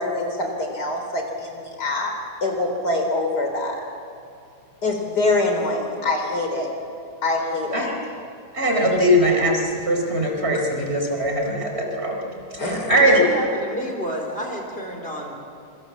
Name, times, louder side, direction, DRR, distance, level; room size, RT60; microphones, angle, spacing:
voice 1, 0.0-2.1 2.4-3.8 4.8-6.7 7.2-7.9 12.6-12.9, left 2 dB, 60° left, 2 dB, 4.3 m, -24 dB
voice 2, 8.5-13.2, equal, 35° right, 1 dB, 4.5 m, -21 dB
voice 3, 13.0-15.4, equal, 30° left, 0 dB, 4.3 m, -29 dB
27.0 x 25.0 x 7.5 m, 2.5 s
omnidirectional pair, 2.0 m